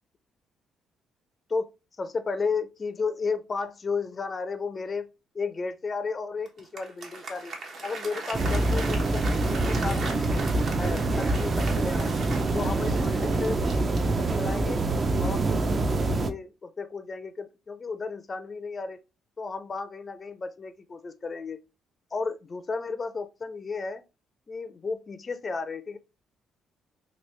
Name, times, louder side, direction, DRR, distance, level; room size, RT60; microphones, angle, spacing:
voice 1, 2.0-5.1 5.3-7.5 7.8-10.5 10.8-12.2 12.5-13.6 14.2-14.8 15.2-19.0 19.4-21.6 22.1-24.0 24.5-26.0, left 4 dB, 35° left, 0.4 m, -33 dB
Applause, 6.5-14.6, right 3 dB, 60° right, 0.9 m, -39 dB
sound 1, 8.3-16.3, right 2 dB, 40° right, 0.4 m, -25 dB
3.0 x 2.6 x 3.1 m
cardioid pair, 90°, 0 cm